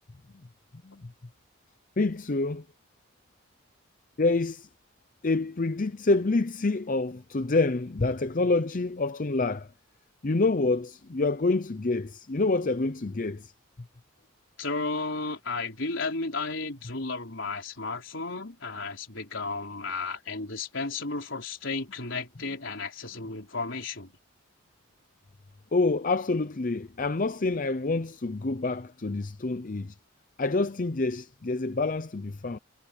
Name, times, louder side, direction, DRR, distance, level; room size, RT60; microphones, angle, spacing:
voice 1, 2.0-2.6 4.2-4.7 5.2-9.7 10.2-13.5 25.7-29.9 30.4-32.6, left 3 dB, 40° left, 0.6 m, -27 dB
voice 2, 14.6-24.1, left 3 dB, 60° left, 4.3 m, -33 dB
head